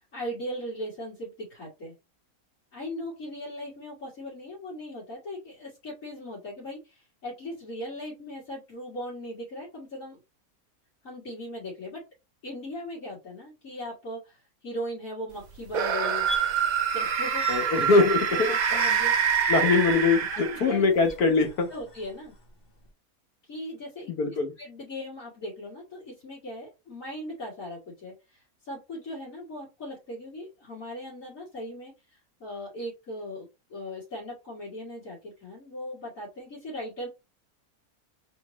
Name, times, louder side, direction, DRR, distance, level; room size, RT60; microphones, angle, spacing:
voice 1, 0.0-1.9 2.7-10.2 11.0-12.0 12.4-16.3 16.9-19.7 20.3-20.8 21.7-22.3 23.5-24.1 24.6-37.1, left 1 dB, 60° left, 2.6 m, -39 dB
sound 1, 15.7-20.9, right 8 dB, 75° right, 1.1 m, -26 dB
sound 2, 16.0-22.1 22.8-22.9, left 2 dB, 45° left, 1.1 m, -39 dB
voice 2, 17.5-18.5 19.5-21.7 24.1-24.5, left 4 dB, 90° left, 1.6 m, -22 dB
4.3 x 3.1 x 3.0 m
omnidirectional pair, 1.5 m